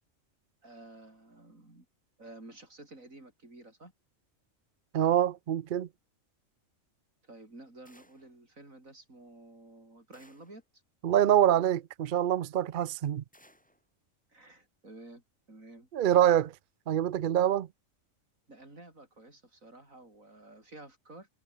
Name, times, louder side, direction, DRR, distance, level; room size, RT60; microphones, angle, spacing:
voice 1, 0.6-1.9 2.2-3.9 7.2-10.8 14.3-15.9 18.5-21.3, right 2 dB, 85° right, 6.7 m, -52 dB
voice 2, 4.9-5.9 11.0-13.2 15.9-16.5 16.9-17.7, right 11 dB, 55° right, 0.6 m, -25 dB
sound 1, 7.9-8.4 10.1-10.7 13.3-13.8, equal, 5° left, 3.5 m, -61 dB
omnidirectional pair, 1.4 m